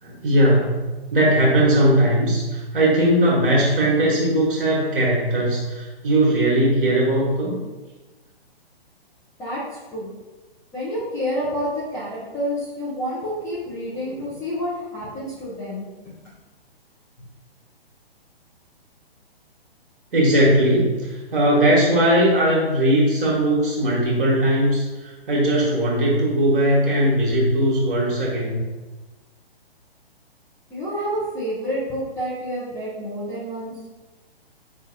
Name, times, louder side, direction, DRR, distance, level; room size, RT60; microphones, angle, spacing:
voice 1, 0.0-7.6 13.9-14.2 20.1-28.6, right 1 dB, 55° right, -5 dB, 1.4 m, -19 dB
voice 2, 10.7-16.1 30.7-33.7, equal, 10° left, -11 dB, 0.7 m, -29 dB
5.2 x 3.2 x 2.6 m, 1.2 s
figure-of-eight pair, 125°, 30 cm